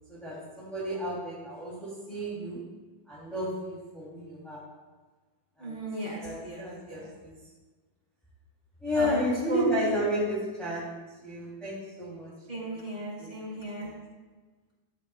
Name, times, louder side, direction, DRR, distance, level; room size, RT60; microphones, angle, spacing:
voice 1, 0.1-2.6 3.1-4.6 5.6-5.8 6.2-7.3 8.8-12.3 12.6-12.7 13.2-13.3 13.8-13.9, equal, ahead, -8 dB, 2.5 m, -32 dB
voice 2, 5.6-7.1 8.9-9.7 12.5-13.9, right 1 dB, 20° right, -8 dB, 4.5 m, -36 dB
15.5 x 12.5 x 2.4 m, 1.3 s
omnidirectional pair, 4.0 m